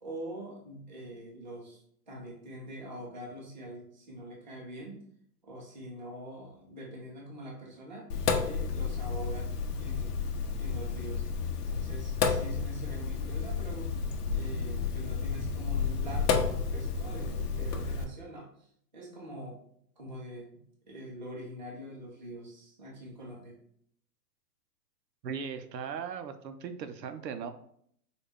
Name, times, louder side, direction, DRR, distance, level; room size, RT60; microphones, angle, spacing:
voice 1, 0.0-5.0 5.4-8.1 8.4-9.5 9.8-10.2 10.6-11.3 11.7-13.9 14.3-19.6 20.0-23.6, right 1 dB, 30° right, -2 dB, 0.4 m, -44 dB
Sink (filling or washing), 8.1-18.0, left 5 dB, 70° left, 0.7 m, -31 dB
voice 2, 25.2-27.5, right 6 dB, 85° right, 9 dB, 0.7 m, -38 dB
4.0 x 2.3 x 3.4 m, 0.66 s
hypercardioid pair, 170°, 49 cm